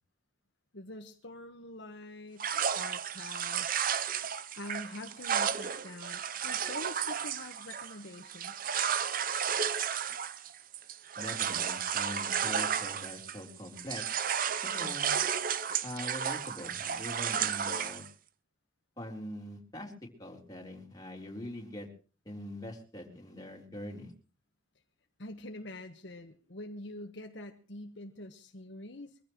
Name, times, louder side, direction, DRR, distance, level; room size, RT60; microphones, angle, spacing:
voice 1, 0.7-2.4 2.7-3.7 4.6-8.7 25.2-29.2, left 1 dB, 60° left, 4 dB, 1.3 m, -45 dB
sound 1, 2.4-13.5 13.8-18.1, right 8 dB, 45° right, 0.7 m, -33 dB
voice 2, 11.2-14.2 14.6-15.1 15.8-18.0 19.0-19.9 20.2-21.9 22.3-24.1, left 1 dB, 20° left, 0 dB, 3.9 m, -43 dB
24.0 x 15.5 x 3.1 m, 0.37 s
head